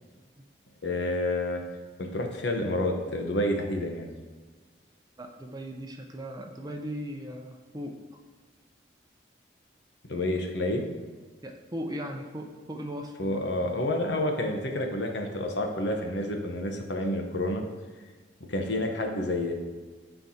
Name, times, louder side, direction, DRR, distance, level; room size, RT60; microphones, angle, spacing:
voice 1, 0.8-1.6 2.0-4.1 10.1-10.8 13.2-17.6 18.5-19.5, left 1 dB, 75° left, 3 dB, 1.0 m, -29 dB
voice 2, 5.2-8.0 11.4-13.7, equal, 20° right, 3 dB, 0.6 m, -38 dB
13.0 x 4.6 x 2.8 m, 1.4 s
head